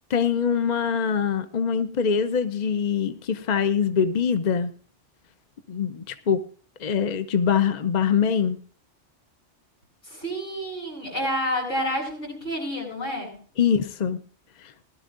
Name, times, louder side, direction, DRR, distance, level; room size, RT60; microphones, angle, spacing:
voice 1, 0.1-4.7 5.7-6.4 6.8-8.6 13.6-14.2, left 7 dB, 40° left, 10 dB, 0.8 m, -23 dB
voice 2, 10.1-13.4, equal, 90° left, -1 dB, 8.1 m, -29 dB
20.0 x 12.5 x 2.6 m, 0.40 s
omnidirectional pair, 1.3 m